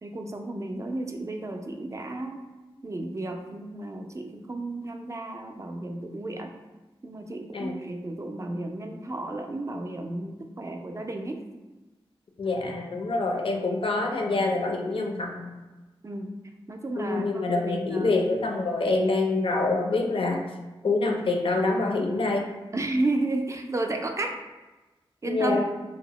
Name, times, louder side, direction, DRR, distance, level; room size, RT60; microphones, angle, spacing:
voice 1, 0.0-2.4 2.8-6.5 7.0-11.4 16.0-16.3 16.7-18.2 22.7-24.4 25.2-25.6, right 2 dB, 30° right, 4 dB, 0.3 m, -32 dB
voice 2, 12.4-15.5 17.0-20.4 20.8-22.5 25.3-25.6, left 3 dB, 60° left, 2 dB, 0.4 m, -26 dB
2.7 x 2.0 x 2.9 m, 1.1 s
wide cardioid pair, 55°, 10 cm